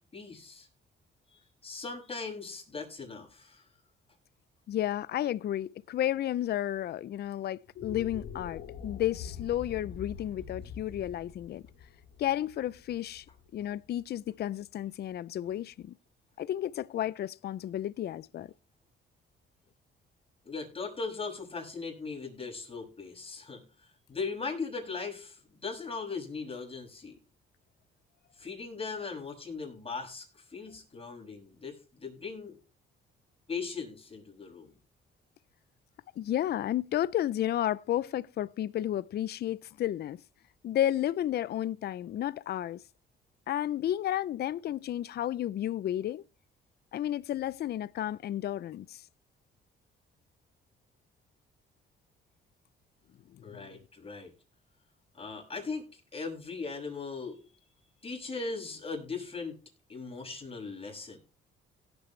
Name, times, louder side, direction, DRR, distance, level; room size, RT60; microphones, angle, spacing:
voice 1, 0.1-0.7 1.3-3.6 20.4-27.2 28.4-32.6 33.5-34.8 53.4-54.3 55.2-57.4 58.0-59.5 59.9-61.2, left 4 dB, 30° left, 6.5 m, -39 dB
voice 2, 4.7-11.6 12.2-13.2 13.5-15.9 16.4-18.5 36.2-40.2 40.6-42.8 43.5-46.3 46.9-49.0 53.3-53.8, left 12 dB, 55° left, 0.5 m, -32 dB
sound 1, 7.6-14.0, left 7 dB, 85° left, 3.1 m, -44 dB
17.0 x 8.8 x 3.2 m
cardioid pair, 90°, 20 cm